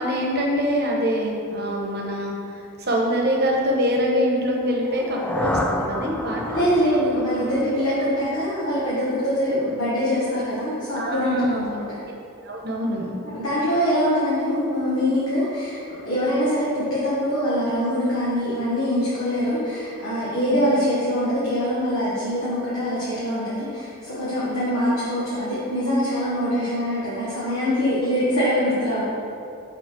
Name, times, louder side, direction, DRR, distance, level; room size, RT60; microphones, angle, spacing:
voice 1, 0.0-2.3 2.8-6.6 9.4-9.5 10.9-11.9 12.4-13.1 20.3-20.7, equal, 50° right, -1 dB, 1.0 m, -24 dB
sound 1, 4.8-8.7, left 1 dB, 5° left, 0.4 m, -30 dB
voice 2, 6.5-11.8 13.3-29.0, equal, 65° left, -10 dB, 1.5 m, -23 dB
5.4 x 4.2 x 6.1 m, 2.7 s
head